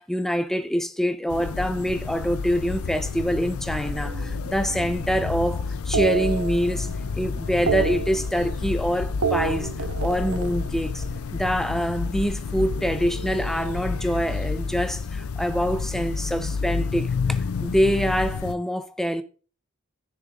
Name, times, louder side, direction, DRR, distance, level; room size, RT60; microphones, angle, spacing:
voice 1, 0.0-6.9 7.1-9.7 10.0-11.0 11.3-19.2, equal, ahead, 0.5 m, -25 dB
sound 1, 1.3-18.5, left 4 dB, 85° left, 0.4 m, -30 dB
sound 2, 4.0-5.3 5.9-7.1 7.4-8.8 9.1-11.4 12.6-14.4, right 6 dB, 85° right, 0.9 m, -31 dB
15.0 x 6.8 x 2.4 m
head